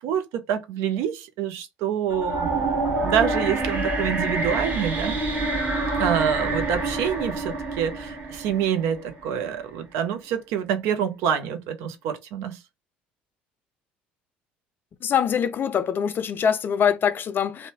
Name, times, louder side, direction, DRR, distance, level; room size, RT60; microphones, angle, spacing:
voice 1, 0.0-5.2 6.0-12.6, right 9 dB, 65° right, 0.6 m, -27 dB
sound 1, 2.1-9.2, right 2 dB, 35° right, 1.2 m, -27 dB
voice 2, 15.0-17.7, left 8 dB, 45° left, 0.4 m, -23 dB
2.6 x 2.1 x 2.7 m
hypercardioid pair, 60°, 5 cm